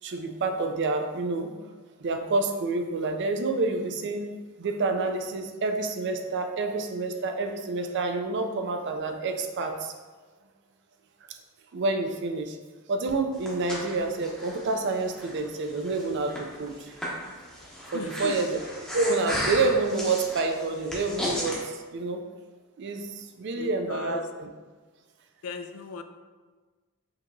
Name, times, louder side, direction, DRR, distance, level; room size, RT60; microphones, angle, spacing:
voice 1, 0.0-1.5 2.0-4.3 4.6-9.9 11.3-11.4 11.7-12.6 12.9-17.0 17.9-22.2 22.8-24.5, right 3 dB, 50° right, 5 dB, 0.4 m, -28 dB
Breathing, 13.1-21.6, equal, 5° left, 0.7 m, -35 dB
voice 2, 17.9-18.4 23.5-24.2 25.4-26.0, left 5 dB, 70° left, 8 dB, 0.3 m, -37 dB
5.2 x 2.8 x 2.6 m, 1.3 s
head